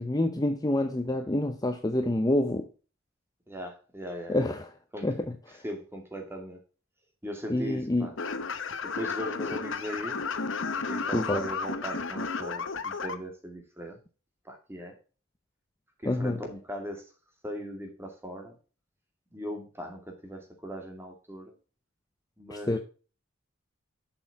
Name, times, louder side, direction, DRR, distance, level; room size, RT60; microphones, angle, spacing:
voice 1, 0.0-2.7 4.3-4.7 5.0-5.6 7.5-8.1 11.1-11.4 16.1-16.4 22.5-22.8, left 1 dB, 20° left, 0.6 m, -27 dB
voice 2, 3.5-4.5 4.9-5.1 5.6-6.6 7.2-8.1 8.8-10.2 10.9-14.0 14.4-14.9 16.0-17.1 17.4-18.6 19.3-21.5 22.4-22.8, equal, 10° right, 2.2 m, -39 dB
sound 1, 8.2-13.1, left 4 dB, 65° left, 0.9 m, -33 dB
7.6 x 6.3 x 4.0 m
head